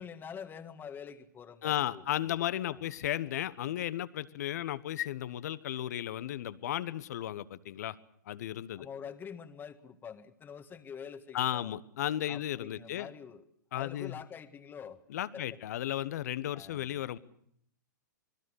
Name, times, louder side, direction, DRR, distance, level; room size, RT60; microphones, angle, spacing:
voice 1, 0.0-2.4 2.6-2.9 8.8-11.8 12.3-13.4 13.7-15.0 15.3-15.5 16.5-17.1, left 7 dB, 20° left, 9 dB, 1.8 m, -46 dB
voice 2, 1.6-8.0 8.3-8.9 11.3-13.1 13.7-14.2 15.1-17.2, left 12 dB, 55° left, 16 dB, 1.2 m, -34 dB
27.0 x 21.5 x 6.5 m, 0.69 s
figure-of-eight pair, 105°, 10 cm